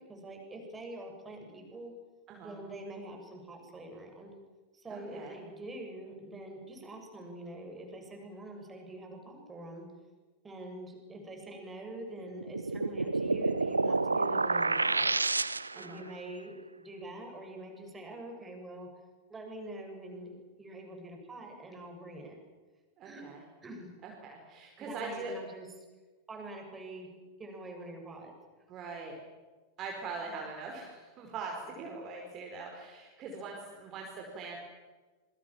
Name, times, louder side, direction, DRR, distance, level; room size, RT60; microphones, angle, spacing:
voice 1, 0.0-1.9 2.4-4.3 4.7-9.9 10.4-15.1 15.8-18.9 19.3-22.4 23.0-23.2 23.6-23.9 24.8-25.7 26.3-27.1 27.4-28.3, right 1 dB, 15° right, 3 dB, 7.6 m, -45 dB
voice 2, 4.9-5.4 15.7-16.1 23.0-23.4 24.0-25.3 28.7-29.2 29.8-34.6, right 4 dB, 30° right, 1 dB, 5.0 m, -42 dB
sound 1, 12.4-16.0, right 3 dB, 80° right, 0.7 m, -29 dB
27.5 x 24.0 x 7.5 m, 1.3 s
figure-of-eight pair, 90°, 0 cm